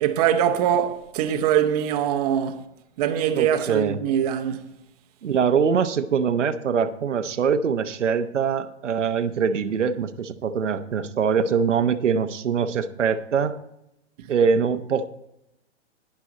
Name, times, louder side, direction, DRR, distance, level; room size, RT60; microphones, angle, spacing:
voice 1, 0.0-2.6 3.0-4.7, right 10 dB, 35° right, 1.0 m, -23 dB
voice 2, 3.4-4.0 5.2-13.6 14.3-15.0, right 6 dB, 85° right, 1.0 m, -23 dB
11.5 x 10.0 x 4.1 m
hypercardioid pair, 145°, 35 cm